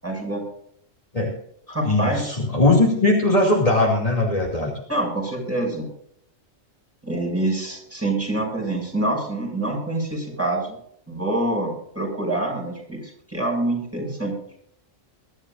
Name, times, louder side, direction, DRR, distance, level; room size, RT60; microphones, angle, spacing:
voice 1, 0.0-0.4 1.7-2.3 4.9-5.9 7.0-10.8 11.1-14.4, right 2 dB, 10° right, -2 dB, 6.8 m, -26 dB
voice 2, 1.8-4.7, left 2 dB, 30° left, -2 dB, 2.7 m, -19 dB
23.0 x 13.0 x 2.6 m, 0.69 s
omnidirectional pair, 1.3 m